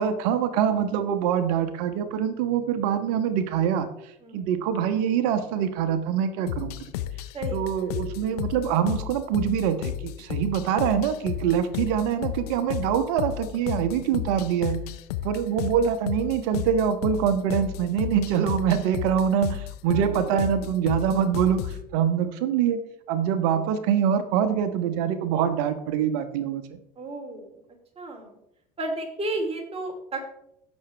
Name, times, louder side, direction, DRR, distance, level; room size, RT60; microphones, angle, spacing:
voice 1, 0.0-6.9 7.5-14.8 15.2-22.8 23.1-26.8, right 8 dB, 65° right, 10 dB, 1.1 m, -24 dB
sound 1, 6.5-21.8, left 13 dB, 75° left, 0.7 m, -33 dB
voice 2, 19.9-20.2 27.0-27.6 28.0-28.4 28.8-30.2, right 2 dB, 30° right, 2 dB, 3.1 m, -33 dB
16.5 x 6.3 x 3.3 m, 0.79 s
hypercardioid pair, 70°, 20 cm